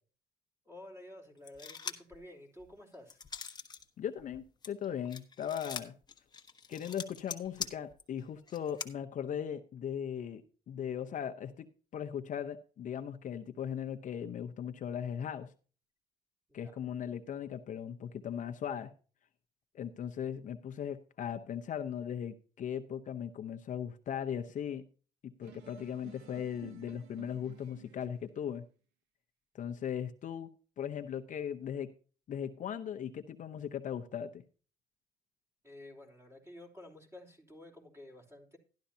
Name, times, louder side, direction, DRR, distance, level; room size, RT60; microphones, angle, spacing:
voice 1, 0.6-3.2 16.5-16.8 35.6-38.6, left 1 dB, 15° right, 2 dB, 3.3 m, -52 dB
sound 1, 1.5-2.2 2.6-3.8 4.2-8.9, left 5 dB, 25° left, 1.2 m, -43 dB
voice 2, 4.0-5.9 6.7-11.7 11.9-15.5 16.5-18.9 19.7-24.8 25.2-28.6 29.5-30.5 30.8-31.9 32.3-34.4, left 8 dB, 50° left, 7 dB, 0.8 m, -38 dB
sound 2, 25.4-28.3, right 12 dB, 90° right, 1.0 m, -54 dB
12.5 x 11.5 x 2.8 m, 0.37 s
cardioid pair, 110°, 17 cm